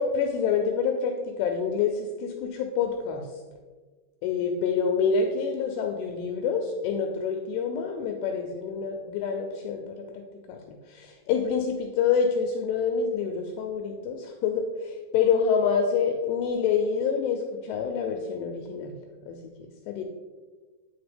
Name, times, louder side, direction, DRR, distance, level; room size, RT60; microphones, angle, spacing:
voice 1, 0.0-3.3 4.2-18.9 19.3-19.4 19.9-20.0, left 6 dB, 85° left, 3 dB, 2.5 m, -27 dB
8.7 x 3.8 x 3.4 m, 1.4 s
omnidirectional pair, 5.2 m